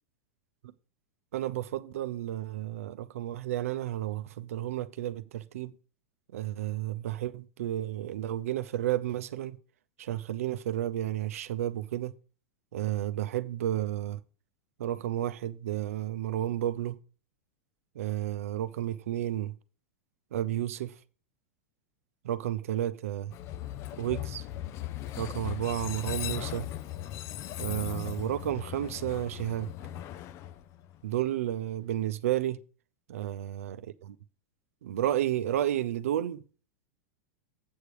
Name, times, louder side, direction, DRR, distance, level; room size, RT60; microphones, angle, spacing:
voice 1, 1.3-5.7 6.3-9.6 10.0-12.1 12.7-14.2 14.8-17.0 17.9-19.5 20.3-20.9 22.2-23.3 24.0-24.5 25.2-26.7 27.6-29.7 31.0-32.6 33.1-34.2 34.8-36.4, right 12 dB, 80° right, 0.6 m, -32 dB
Train, 23.3-31.3, left 13 dB, 40° left, 0.5 m, -38 dB
8.1 x 6.8 x 4.8 m
hypercardioid pair, 125°, 8 cm